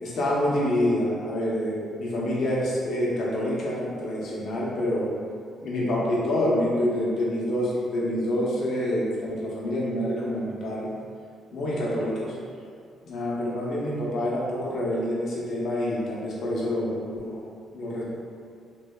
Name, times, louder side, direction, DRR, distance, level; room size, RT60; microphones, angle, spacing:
voice 1, 0.0-5.1 5.6-10.9 11.5-12.3 13.0-17.4 17.7-18.0, left 1 dB, 65° left, -5 dB, 0.6 m, -27 dB
2.6 x 2.1 x 2.2 m, 2.2 s
cardioid pair, 90°, 0 cm